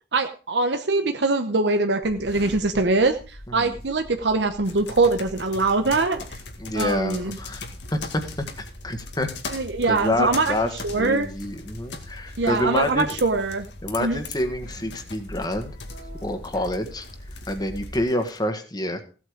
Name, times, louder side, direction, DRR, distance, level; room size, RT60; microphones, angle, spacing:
voice 1, 0.1-6.4 6.7-7.4 9.5-10.5 10.8-11.3 12.4-13.7 14.0-14.2, right 3 dB, 85° right, 6 dB, 0.9 m, -23 dB
sound 1, 2.0-18.0, equal, 65° left, 3.8 m, -42 dB
sound 2, 4.7-18.4, left 5 dB, 80° left, 2.1 m, -41 dB
voice 2, 6.6-7.6 7.9-8.2 8.6-9.3 9.9-10.7 11.0-13.2 13.8-15.7 16.2-17.1 17.5-19.0, left 1 dB, 25° left, 7 dB, 1.7 m, -27 dB
16.0 x 8.3 x 5.0 m, 0.37 s
head